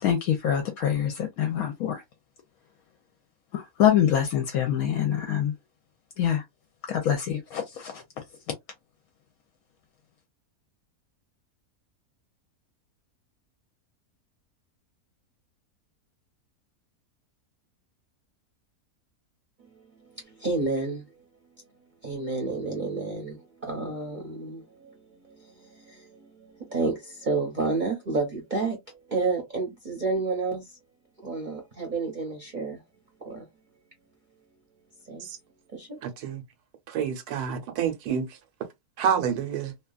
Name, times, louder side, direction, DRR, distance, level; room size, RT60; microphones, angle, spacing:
voice 1, 0.0-2.0 3.5-5.5 6.2-6.4 6.8-8.0, left 9 dB, 75° left, 1.0 m, -25 dB
voice 2, 20.1-21.0 22.0-24.9 25.3-30.6 31.2-32.8 33.2-33.4 35.1-35.3 35.7-36.0, right 3 dB, 40° right, 0.8 m, -30 dB
voice 3, 36.0-36.4 36.9-38.3 39.0-39.7, right 8 dB, 85° right, 1.3 m, -28 dB
2.8 x 2.3 x 2.3 m
omnidirectional pair, 1.6 m